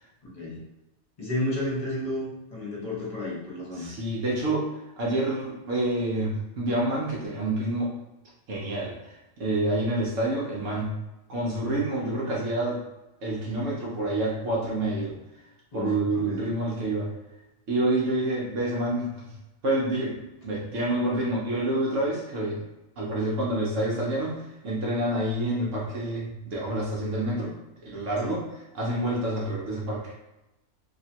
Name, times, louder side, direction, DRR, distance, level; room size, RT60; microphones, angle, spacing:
voice 1, 0.2-0.6 1.2-3.9 15.7-16.5 28.2-28.4, left 1 dB, 30° left, -5 dB, 1.0 m, -32 dB
voice 2, 3.8-7.9 8.5-11.0 11.3-12.8 13.2-15.2 15.7-17.1 17.7-19.3 19.6-22.6 23.0-27.5 27.8-28.4 28.7-30.1, right 1 dB, 65° right, -4 dB, 1.1 m, -28 dB
3.1 x 2.8 x 2.8 m, 0.96 s
omnidirectional pair, 1.4 m